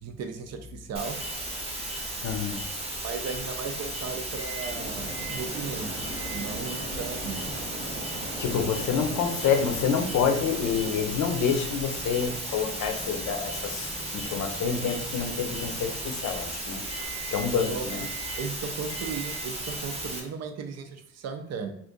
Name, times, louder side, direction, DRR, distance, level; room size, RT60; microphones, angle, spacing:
voice 1, 0.0-1.2 3.0-7.4 17.7-18.1 18.4-21.7, right 5 dB, 60° right, 6 dB, 0.5 m, -36 dB
sound 1, 0.9-20.2, right 1 dB, 20° right, 0.8 m, -35 dB
voice 2, 2.2-2.6 8.4-16.8 17.3-18.1, left 6 dB, 70° left, 6 dB, 0.6 m, -28 dB
Microwave oven, 4.4-4.8 5.1-5.4 6.1-6.5 6.9-16.5 16.9-17.5 17.9-18.5 18.9-19.5, right 3 dB, 15° left, 0.8 m, -45 dB
sound 2, 4.7-10.8, right 1 dB, 80° right, 1.1 m, -39 dB
2.5 x 2.5 x 3.7 m, 0.69 s
cardioid pair, 90°, 30 cm